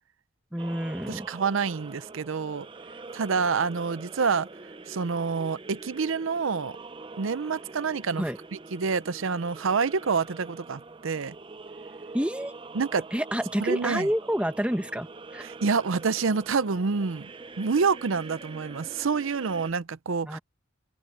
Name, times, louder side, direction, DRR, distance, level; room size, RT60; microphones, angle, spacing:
voice 1, 0.5-1.3 8.2-8.4 12.1-12.5 13.1-15.1 15.3-15.4 20.3-20.4, equal, 5° right, 1.1 m, -28 dB
sound 1, 0.6-19.7, right 3 dB, 25° right, 0.6 m, -44 dB
voice 2, 1.1-2.7 3.1-4.5 4.9-6.7 7.2-8.2 8.5-11.3 12.7-13.0 13.6-14.1 15.4-17.3 17.6-20.4, right 5 dB, 80° right, 0.6 m, -27 dB
open air
head